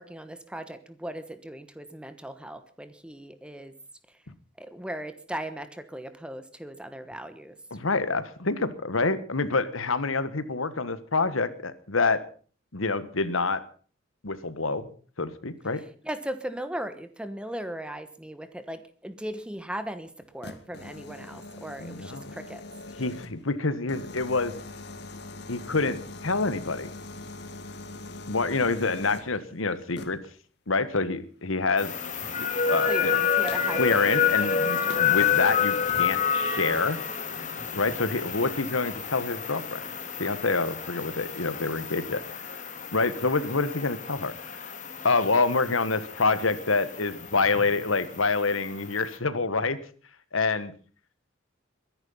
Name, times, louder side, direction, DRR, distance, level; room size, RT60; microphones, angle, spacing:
voice 1, 0.0-3.7 4.6-7.5 16.0-22.6 32.9-33.8 34.1-35.2, right 1 dB, 5° right, 11 dB, 1.2 m, -38 dB
voice 2, 7.7-12.2 12.7-13.6 14.2-14.9 15.2-15.8 21.8-22.4 23.0-24.5 25.5-26.9 28.3-30.2 30.7-31.9 32.4-33.2 33.7-37.0 37.7-39.8 40.2-42.2 42.9-44.6 45.0-49.8 50.3-50.7, left 3 dB, 90° left, 14 dB, 1.5 m, -27 dB
sound 1, 20.2-23.5 23.9-29.4 29.9-30.3 32.7-32.8 33.5-33.9 34.5-34.6 34.9-35.5 35.9-36.2, left 2 dB, 55° left, 1.9 m, -42 dB
sound 2, 31.8-49.2, left 7 dB, 40° left, 2.2 m, -29 dB
22.0 x 11.0 x 5.6 m, 0.42 s
head